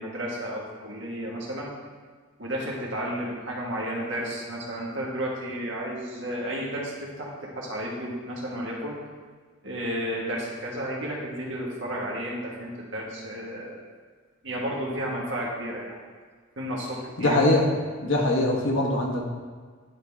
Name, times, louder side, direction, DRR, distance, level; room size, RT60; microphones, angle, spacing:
voice 1, 0.0-1.7 2.4-9.0 9.6-13.8 14.4-16.0 16.6-17.4, equal, 65° right, -3 dB, 1.6 m, -32 dB
voice 2, 17.2-17.7 18.0-19.2, left 2 dB, 75° left, -1 dB, 1.3 m, -22 dB
10.5 x 3.9 x 3.5 m, 1.5 s
head